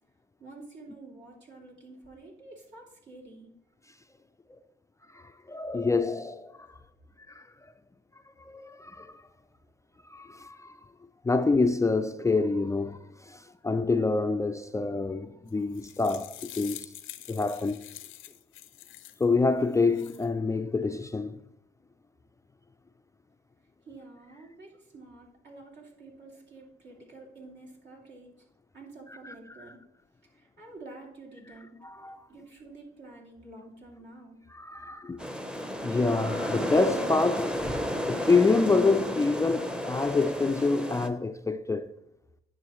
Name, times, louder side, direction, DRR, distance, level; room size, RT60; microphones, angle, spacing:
voice 1, 0.4-3.5 23.8-28.3 28.7-29.8 30.2-31.8 32.3-34.4, right 2 dB, 65° right, 2.8 m, -49 dB
voice 2, 5.1-6.8 7.3-7.5 8.4-9.2 10.1-10.8 11.2-16.9 17.3-17.8 19.2-21.4 29.2-29.3 31.8-32.2 34.5-35.2 35.8-37.6 38.0-41.9, left 3 dB, 15° left, 0.4 m, -27 dB
sound 1, 15.5-19.3 19.7-20.3, left 14 dB, 90° left, 0.6 m, -45 dB
sound 2, 35.2-41.1, equal, 5° right, 0.7 m, -32 dB
9.7 x 6.3 x 3.1 m
cardioid pair, 90°, 20 cm